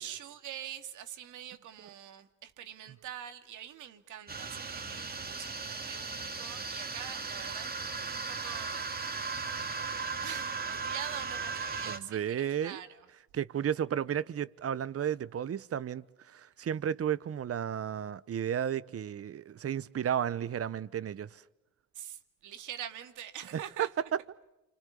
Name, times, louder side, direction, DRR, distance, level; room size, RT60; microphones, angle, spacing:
voice 1, 0.0-13.1 21.9-23.9, right 10 dB, 85° right, 2.2 m, -45 dB
sound 1, 4.3-12.0, right 4 dB, 30° right, 2.4 m, -37 dB
voice 2, 11.9-12.8 13.3-21.4, right 9 dB, 50° right, 1.0 m, -33 dB
29.0 x 25.5 x 7.1 m
cardioid pair, 90°, 30 cm